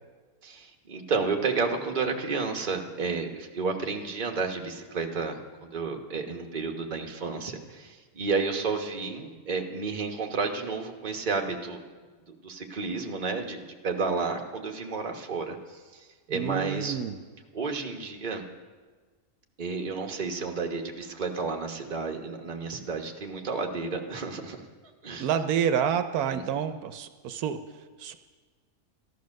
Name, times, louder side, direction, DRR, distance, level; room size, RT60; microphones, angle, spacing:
voice 1, 0.4-11.8 12.4-15.8 16.3-17.0 17.5-18.4 19.6-24.6 25.0-25.3 26.3-26.4, right 4 dB, 35° right, 3 dB, 1.2 m, -31 dB
voice 2, 16.3-17.2 25.2-27.6 28.0-28.2, right 8 dB, 80° right, 9 dB, 1.1 m, -28 dB
13.5 x 11.5 x 6.4 m, 1.4 s
omnidirectional pair, 1.6 m